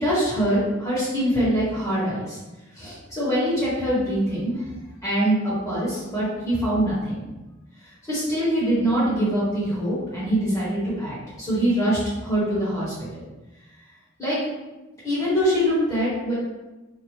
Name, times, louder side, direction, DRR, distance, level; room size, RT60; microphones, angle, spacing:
voice 1, 0.0-2.4 2.8-4.5 5.0-7.2 8.1-13.3 14.2-14.4 15.0-16.3, equal, 15° left, -10 dB, 1.4 m, -24 dB
2.6 x 2.5 x 3.1 m, 1.1 s
head